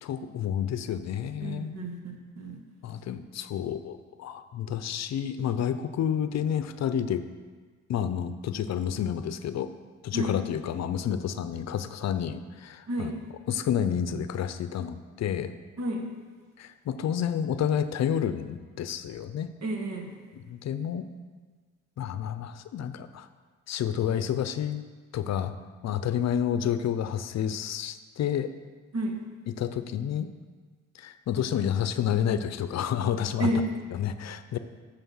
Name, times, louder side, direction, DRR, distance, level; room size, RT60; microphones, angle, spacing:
voice 1, 0.0-1.9 2.8-7.2 7.9-9.7 10.0-13.1 13.5-15.5 16.6-19.5 20.3-21.1 22.0-23.3 23.7-24.8 25.1-25.5 25.8-28.5 29.5-30.3 30.9-33.5 33.9-34.6, left 9 dB, 60° left, 11 dB, 0.6 m, -30 dB
voice 2, 1.4-2.6 10.1-10.3 12.9-13.2 15.8-16.1 19.6-20.1 28.9-29.2 33.4-33.7, right 1 dB, 60° right, 2 dB, 1.7 m, -30 dB
9.2 x 6.9 x 5.6 m, 1.5 s
cardioid pair, 90°, 30 cm